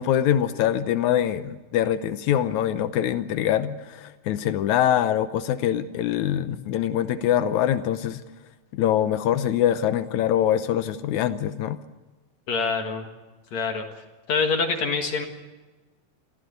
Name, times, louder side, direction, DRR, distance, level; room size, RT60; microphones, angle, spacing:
voice 1, 0.0-8.2 8.7-11.8, left 10 dB, 80° left, 11 dB, 1.7 m, -24 dB
voice 2, 12.5-13.1 13.5-13.8 14.3-15.3, left 4 dB, 55° left, 4 dB, 2.6 m, -25 dB
26.0 x 15.5 x 8.1 m, 1.2 s
omnidirectional pair, 4.4 m